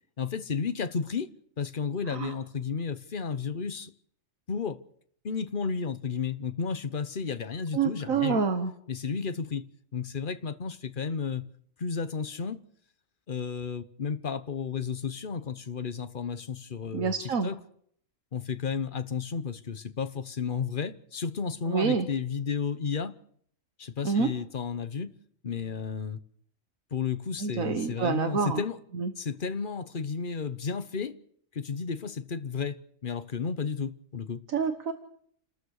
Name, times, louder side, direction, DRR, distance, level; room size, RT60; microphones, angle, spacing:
voice 1, 0.2-1.3 1.6-3.9 4.5-4.8 5.2-8.5 8.9-9.7 9.9-11.4 11.8-12.6 13.3-17.6 18.3-23.1 23.8-25.1 25.4-26.2 26.9-28.8 29.2-31.2 31.5-34.4, left 6 dB, 40° left, 1.1 m, -32 dB
voice 2, 7.7-8.7 16.9-17.5 21.7-22.1 24.0-24.3 27.4-28.6 28.9-29.1 34.5-34.9, right 5 dB, 80° right, 1.7 m, -27 dB
29.5 x 13.5 x 6.6 m
omnidirectional pair, 1.4 m